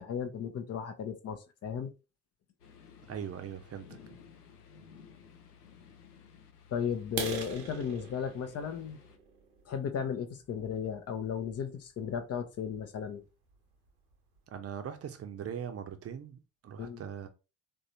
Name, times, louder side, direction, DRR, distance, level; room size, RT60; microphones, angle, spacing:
voice 1, 0.0-1.9 6.7-9.0 9.7-13.2 16.8-17.0, left 7 dB, 35° left, 0.6 m, -35 dB
sound 1, 2.6-9.2, left 7 dB, 85° left, 0.5 m, -56 dB
voice 2, 3.1-4.0 14.5-17.3, right 8 dB, 30° right, 0.7 m, -41 dB
sound 2, 7.1-10.8 11.4-11.5 12.0-12.1 12.5-12.7 13.0-13.1 13.6-13.7 13.9-14.4, right 5 dB, 75° right, 0.9 m, -42 dB
3.3 x 2.6 x 2.7 m
figure-of-eight pair, 50°, 45 cm